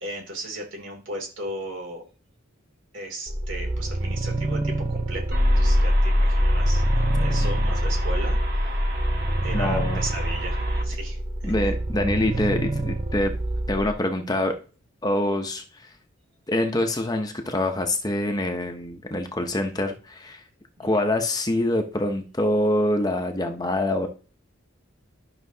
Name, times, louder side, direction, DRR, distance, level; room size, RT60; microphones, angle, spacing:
voice 1, 0.0-2.0 2.9-5.2 5.6-8.4 9.4-11.2 11.4-11.5 20.8-21.0, right 1 dB, 65° right, 1 dB, 2.7 m, -36 dB
sound 1, 3.3-13.9, right 2 dB, 25° right, 0.6 m, -28 dB
sound 2, 5.3-10.8, left 1 dB, 50° right, 1.4 m, -23 dB
voice 2, 9.5-10.0 11.4-13.3 13.7-14.5 15.0-15.6 16.5-20.4 20.8-24.1, left 1 dB, 20° left, 5 dB, 0.7 m, -25 dB
11.5 x 5.8 x 2.7 m, 0.38 s
head